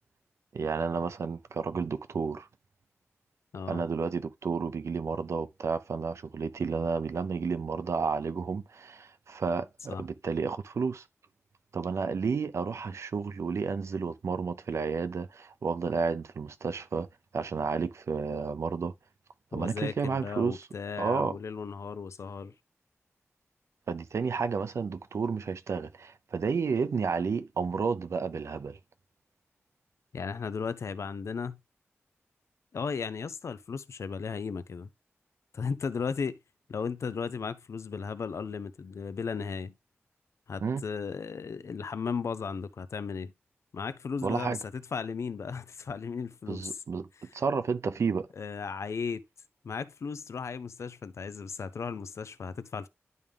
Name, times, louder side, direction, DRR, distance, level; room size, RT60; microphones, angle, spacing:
voice 1, 0.5-2.5 3.7-11.0 11.7-17.1 17.3-18.9 19.5-20.6 21.0-21.4 23.9-28.8 40.6-40.8 44.2-44.6 46.5-47.1 47.3-48.3, right 5 dB, 85° right, 0.6 m, -31 dB
voice 2, 3.5-3.9 9.9-10.0 19.5-22.5 30.1-31.6 32.7-34.9 35.5-36.4 36.7-39.8 40.5-43.3 43.7-46.8 47.3-47.4 48.4-49.2 49.6-52.9, left 5 dB, 85° left, 0.5 m, -35 dB
10.5 x 3.6 x 3.4 m
wide cardioid pair, 115°, 5 cm